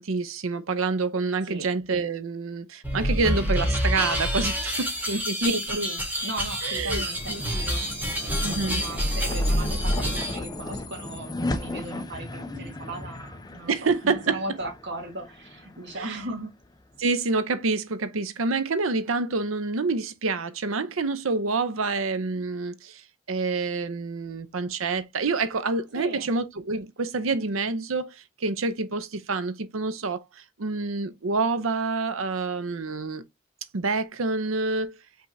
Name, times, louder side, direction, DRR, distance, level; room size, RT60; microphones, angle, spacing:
voice 1, 0.0-5.8 6.6-7.4 8.4-8.9 13.7-14.4 16.0-16.2 17.0-23.0 23.3-30.2 30.6-33.2 33.7-35.0, right 3 dB, 85° right, 0.7 m, -27 dB
sound 1, 2.8-10.4, equal, 10° right, 1.5 m, -27 dB
voice 2, 5.4-7.9 8.2-13.7 14.0-16.5 25.9-26.3, right 1 dB, 60° right, 1.7 m, -36 dB
sound 2, 6.4-17.0, left 2 dB, 20° left, 0.6 m, -37 dB
5.4 x 3.5 x 2.7 m
head